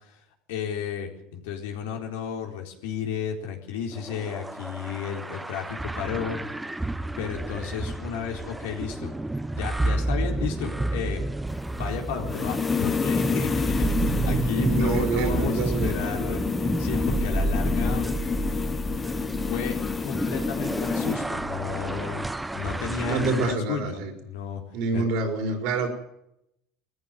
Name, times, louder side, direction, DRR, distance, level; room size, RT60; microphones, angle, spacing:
voice 1, 0.5-6.4 7.2-9.1 9.5-11.2 11.7-16.4 16.8-18.1 19.5-24.6 24.9-25.1, left 7 dB, 90° left, 2 dB, 4.1 m, -33 dB
sound 1, 3.9-23.5, right 2 dB, 5° right, 0.8 m, -30 dB
sound 2, 11.5-21.2, left 5 dB, 25° left, 1.4 m, -29 dB
voice 2, 14.0-15.9 23.1-24.1 24.7-25.9, right 3 dB, 70° right, 4 dB, 4.7 m, -27 dB
20.5 x 14.5 x 9.2 m, 0.79 s
supercardioid pair, 120°, 0 cm